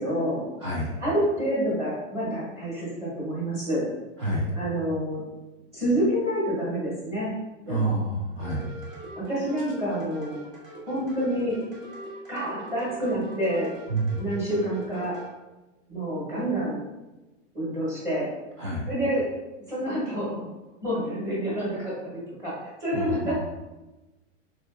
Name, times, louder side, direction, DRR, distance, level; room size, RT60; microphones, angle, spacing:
voice 1, 0.0-0.4 1.0-3.9 4.5-5.2 5.7-7.3 7.6-8.0 9.2-10.4 10.9-11.6 12.3-13.7 14.2-15.2 15.9-16.8 17.5-18.3 18.9-19.2 19.7-20.4 20.8-23.3, equal, 10° right, -8 dB, 0.9 m, -28 dB
voice 2, 0.6-0.9 4.2-4.5 7.7-8.6 13.9-14.2 18.6-18.9 22.9-23.3, right 2 dB, 25° right, -4 dB, 0.3 m, -28 dB
sound 1, 8.4-15.3, right 1 dB, 85° right, 1.1 m, -43 dB
3.6 x 2.5 x 2.3 m, 1.1 s
supercardioid pair, 165°, 38 cm